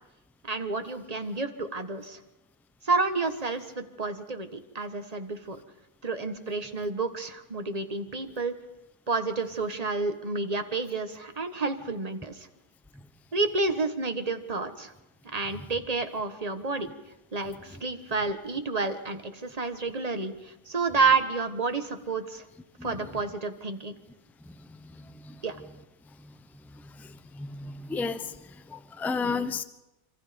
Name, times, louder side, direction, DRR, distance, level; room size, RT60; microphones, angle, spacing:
voice 1, 0.5-2.2 2.8-5.6 6.0-8.5 9.1-12.5 13.3-14.9 15.2-16.9 17.3-22.4 22.8-24.0 25.4-25.6, right 3 dB, 25° right, 7 dB, 1.5 m, -30 dB
voice 2, 27.3-28.3 28.7-29.6, left 4 dB, ahead, 11 dB, 0.4 m, -32 dB
26.0 x 25.5 x 5.2 m, 0.92 s
omnidirectional pair, 1.7 m